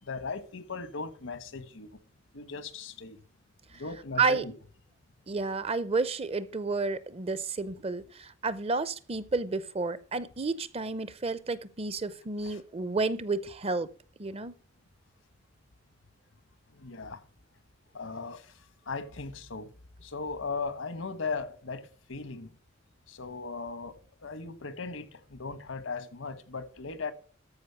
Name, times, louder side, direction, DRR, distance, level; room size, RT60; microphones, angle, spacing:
voice 1, 0.0-2.0 2.3-3.2 3.7-4.6 12.4-12.6 16.7-17.2 17.9-19.7 20.0-22.5 23.1-27.1, left 4 dB, 80° left, 1.2 m, -38 dB
voice 2, 5.3-13.9 14.2-14.5, right 4 dB, 30° right, 0.6 m, -31 dB
14.0 x 5.2 x 6.9 m
head